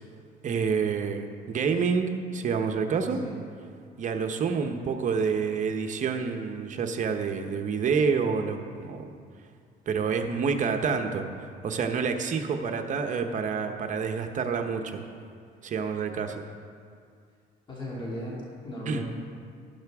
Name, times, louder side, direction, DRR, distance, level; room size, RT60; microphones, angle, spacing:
voice 1, 0.4-3.2 4.0-9.1 9.9-15.0 15.6-16.4 18.9-19.0, right 5 dB, 50° right, 5 dB, 1.0 m, -28 dB
voice 2, 17.7-19.1, equal, 30° left, -5 dB, 2.4 m, -36 dB
12.0 x 12.0 x 3.6 m, 2.2 s
cardioid pair, 110°, 17 cm